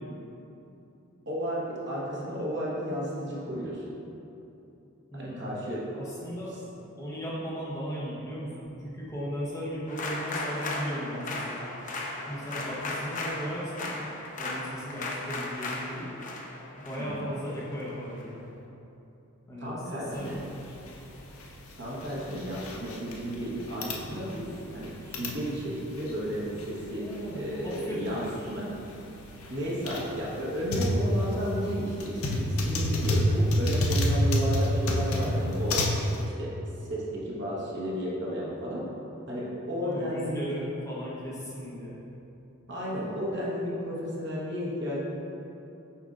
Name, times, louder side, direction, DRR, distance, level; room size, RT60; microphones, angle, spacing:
voice 1, 1.3-3.8 5.2-5.8 17.0-17.3 19.6-20.4 21.8-28.2 28.5-28.6 29.5-35.8 36.2-36.5 36.8-38.8 39.3-40.4 42.7-45.0, equal, 55° right, -6 dB, 1.3 m, -33 dB
voice 2, 5.1-5.5 5.9-6.5 7.0-11.7 12.3-14.0 14.3-16.1 16.8-18.5 19.5-20.5 27.0-28.6 39.8-42.0, equal, 15° left, -8 dB, 1.0 m, -36 dB
sound 1, 9.9-18.2, left 2 dB, 35° left, 0.5 m, -36 dB
sound 2, 20.2-36.2, left 1 dB, 85° left, 0.7 m, -30 dB
7.2 x 5.0 x 2.6 m, 2.9 s
head